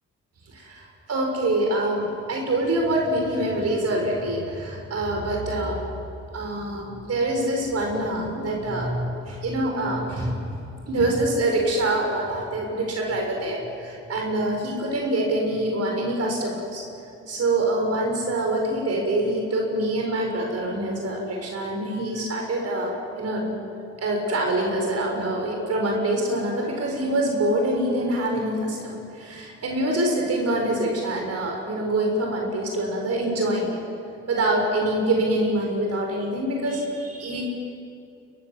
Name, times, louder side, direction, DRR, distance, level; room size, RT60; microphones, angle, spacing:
voice 1, 0.5-5.8 6.3-10.4 10.9-16.8 17.3-23.5 24.0-33.8 34.3-37.4, right 1 dB, 55° right, 0 dB, 6.7 m, -25 dB
29.0 x 23.0 x 7.8 m, 2.6 s
cardioid pair, 90°, 30 cm